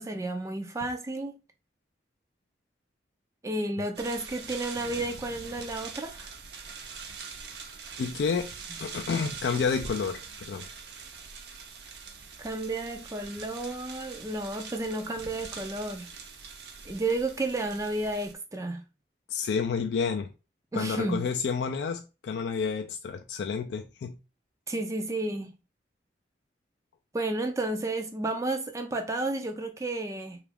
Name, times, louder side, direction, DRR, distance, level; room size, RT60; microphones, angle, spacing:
voice 1, 0.0-1.4 3.4-6.3 12.4-16.1 16.8-18.8 20.7-21.3 24.7-25.5 27.1-30.4, right 2 dB, 15° right, 0.3 m, -32 dB
sound 1, 4.0-18.3, right 5 dB, 65° right, 0.6 m, -43 dB
voice 2, 8.0-8.5 8.8-10.7 19.3-20.3 20.7-24.1, left 5 dB, 70° left, 0.3 m, -30 dB
3.4 x 2.4 x 3.4 m
head